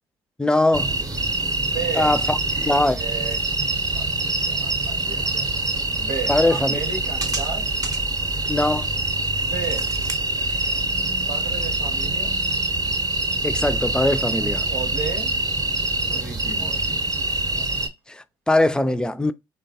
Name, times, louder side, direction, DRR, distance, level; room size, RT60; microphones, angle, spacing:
voice 1, 0.4-0.9 1.9-3.0 6.3-6.8 8.5-8.9 13.4-14.7 18.1-19.3, left 2 dB, 5° left, 0.3 m, -21 dB
sound 1, 0.7-17.9, right 2 dB, 30° right, 0.6 m, -25 dB
voice 2, 1.6-2.1 2.9-3.4 3.9-5.5 6.0-7.7 9.5-9.9 11.3-12.3 14.7-15.3 16.0-17.0, right 5 dB, 70° right, 0.7 m, -33 dB
3.1 x 2.1 x 2.7 m
hypercardioid pair, 45°, 13 cm